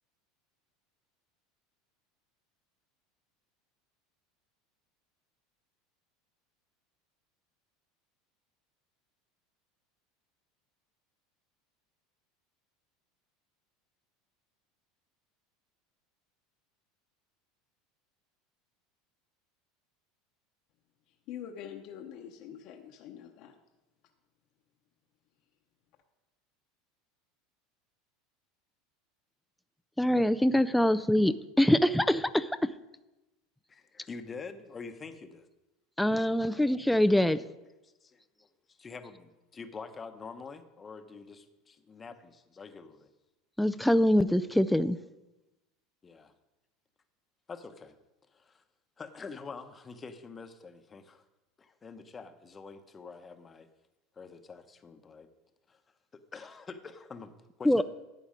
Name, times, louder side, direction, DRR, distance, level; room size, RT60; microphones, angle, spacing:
voice 1, 21.1-23.6, left 9 dB, 55° left, 3 dB, 0.9 m, -45 dB
voice 2, 30.0-32.7 36.0-37.5 43.6-45.0 57.6-57.8, left 1 dB, 5° left, 11 dB, 0.3 m, -24 dB
voice 3, 33.7-35.5 38.0-43.1 46.0-46.3 47.5-47.9 48.3-48.6 49.0-51.2 51.6-53.7 54.2-55.3 55.7-55.8 56.1-57.8, left 4 dB, 20° left, 8 dB, 0.9 m, -46 dB
11.5 x 8.3 x 5.1 m, 1.0 s
supercardioid pair, 140°, 0 cm